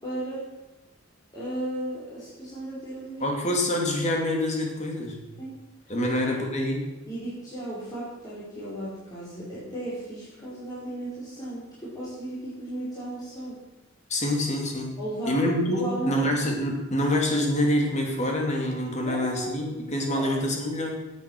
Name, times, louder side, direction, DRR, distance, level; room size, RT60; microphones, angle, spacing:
voice 1, 0.0-0.4 1.3-3.4 5.4-5.6 5.8-6.3 7.1-13.6 15.0-16.3 19.0-19.5 20.1-20.3, right 1 dB, 20° left, -10 dB, 4.9 m, -35 dB
voice 2, 3.2-5.2 5.9-6.8 14.1-15.0 15.3-21.0, left 1 dB, 35° left, 1 dB, 3.2 m, -26 dB
17.0 x 8.8 x 6.4 m, 1.1 s
head